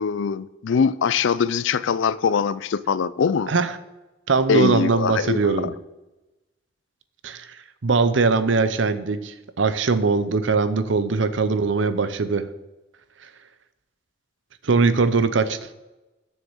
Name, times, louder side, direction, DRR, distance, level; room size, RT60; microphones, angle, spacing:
voice 1, 0.0-3.5 4.5-5.5, left 6 dB, 80° left, 0.4 m, -22 dB
voice 2, 3.5-3.8 4.3-5.7 7.2-12.5 13.2-13.3 14.6-15.7, right 4 dB, 80° right, 0.7 m, -21 dB
7.3 x 6.4 x 7.2 m
head